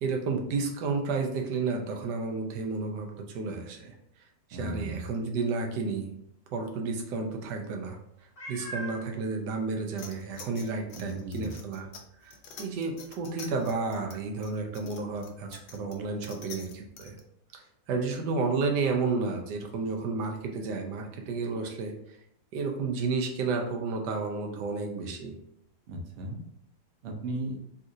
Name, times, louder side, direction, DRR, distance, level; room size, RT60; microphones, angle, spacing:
voice 1, 0.0-3.9 4.5-6.1 6.5-8.0 8.5-11.9 12.2-17.2 17.5-22.2 22.5-25.3, right 4 dB, 90° right, 3 dB, 1.3 m, -31 dB
voice 2, 4.5-5.0 10.9-11.6 25.9-26.4 27.0-27.6, right 1 dB, 60° right, 1 dB, 0.8 m, -36 dB
Meow, 8.4-9.1 9.8-9.9 10.4-10.5 14.5-14.6, right 1 dB, 25° left, 0.9 m, -39 dB
sound 1, 10.0-17.2, left 5 dB, 85° left, 1.2 m, -48 dB
4.0 x 2.4 x 2.6 m, 0.73 s
omnidirectional pair, 1.8 m